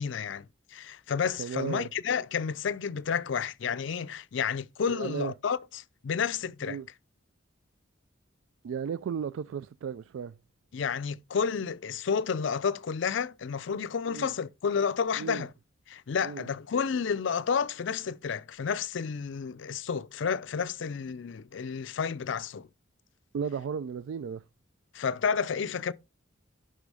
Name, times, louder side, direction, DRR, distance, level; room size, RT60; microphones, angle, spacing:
voice 1, 0.0-6.8 10.7-15.5 15.9-22.7 24.9-25.9, left 6 dB, 70° left, 0.4 m, -31 dB
voice 2, 1.4-1.9 4.9-5.3 6.6-6.9 8.6-10.4 14.1-14.3 15.2-15.5 16.2-16.5 23.3-24.4, right 7 dB, 80° right, 0.3 m, -35 dB
10.5 x 3.7 x 4.8 m
head